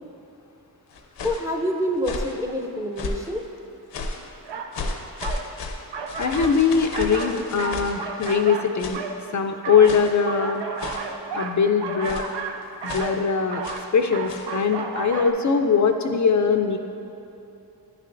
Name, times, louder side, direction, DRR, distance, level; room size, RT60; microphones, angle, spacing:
sound 1, 0.9-1.5 2.0-2.4 3.0-3.4 3.9-4.3 4.7-8.5 8.8-9.1 9.8-10.2 10.8-11.2 12.0-12.4 12.9-13.2 13.6-13.9 14.3-14.5, left 3 dB, 80° left, 0.7 m, -34 dB
voice 1, 1.2-3.4, equal, 10° right, 3 dB, 0.5 m, -27 dB
sound 2, 4.4-4.7 5.2-5.5 5.9-6.6 6.9-9.2 9.6-15.3, right 5 dB, 85° right, 0.6 m, -32 dB
voice 2, 6.2-9.0 9.3-10.6 11.3-12.3 12.8-13.6 13.9-16.8, left 6 dB, 45° left, 5 dB, 0.4 m, -21 dB
9.8 x 6.5 x 2.6 m, 2.9 s
cardioid pair, 50°, 41 cm